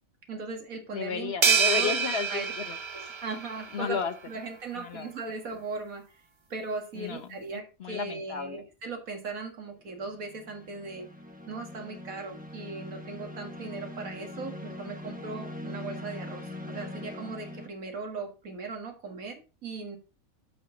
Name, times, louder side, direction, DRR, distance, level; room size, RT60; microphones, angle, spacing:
voice 1, 0.3-2.0 2.3-2.5 2.9-6.0 6.5-11.1 11.5-20.0, right 3 dB, 90° right, 4 dB, 2.2 m, -38 dB
voice 2, 0.9-3.2 3.7-4.1 4.8-5.1 6.9-8.6, left 6 dB, 55° left, 9 dB, 0.9 m, -34 dB
sound 1, 1.4-3.9, right 5 dB, 40° right, 0.4 m, -27 dB
sound 2, 3.6-3.9 9.8-17.7, left 1 dB, 5° right, 1.1 m, -42 dB
7.8 x 6.4 x 3.8 m, 0.33 s
omnidirectional pair, 1.4 m